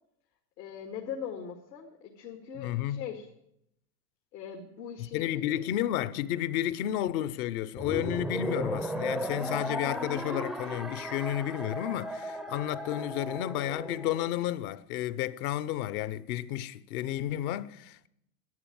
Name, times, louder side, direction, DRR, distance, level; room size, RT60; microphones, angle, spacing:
voice 1, 0.6-3.3 4.3-5.6, left 8 dB, 85° left, 2.1 m, -41 dB
voice 2, 2.5-3.0 5.0-18.1, left 12 dB, 60° left, 0.9 m, -32 dB
sound 1, 7.8-14.3, equal, ahead, 0.4 m, -35 dB
11.0 x 9.8 x 9.4 m
hypercardioid pair, 110°, 49 cm